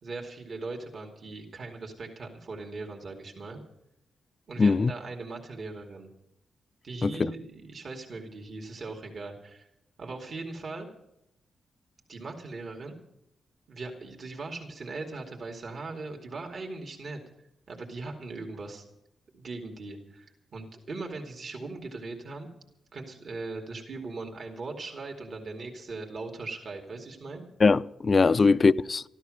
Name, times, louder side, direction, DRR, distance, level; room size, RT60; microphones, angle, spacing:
voice 1, 0.0-3.6 4.5-6.1 6.8-9.7 10.0-10.9 12.1-12.9 13.7-17.2 17.7-18.9 19.3-22.5 22.9-27.5 28.3-28.5, right 3 dB, 55° right, 2.5 m, -39 dB
voice 2, 4.6-4.9 7.0-7.3 27.6-29.0, left 4 dB, 40° left, 0.5 m, -21 dB
13.5 x 13.5 x 6.4 m
cardioid pair, 90°, 0 cm